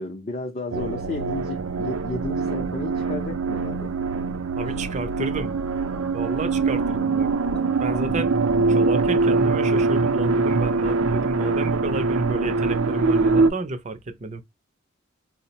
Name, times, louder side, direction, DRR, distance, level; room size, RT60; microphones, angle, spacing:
voice 1, 0.0-3.9, left 2 dB, 35° left, 0.5 m, -32 dB
sound 1, 0.7-13.5, right 3 dB, 90° right, 0.5 m, -23 dB
voice 2, 4.6-5.5 6.1-7.3 7.8-8.4 8.7-14.4, right 2 dB, 35° right, 0.5 m, -31 dB
4.3 x 2.1 x 2.8 m
head